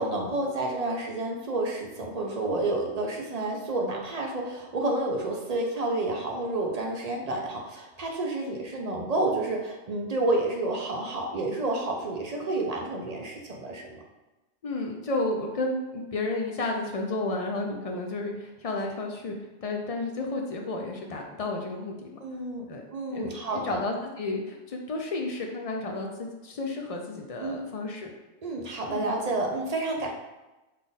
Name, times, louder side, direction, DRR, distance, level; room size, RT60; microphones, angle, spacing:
voice 1, 0.0-14.0 22.2-23.8 27.4-27.7 28.4-30.1, right 2 dB, 45° right, 0 dB, 0.5 m, -30 dB
voice 2, 14.6-22.2 22.7-22.8 23.1-28.1 28.9-29.1, left 2 dB, 70° left, 1 dB, 0.3 m, -32 dB
5.5 x 2.5 x 3.9 m, 1.1 s
omnidirectional pair, 1.3 m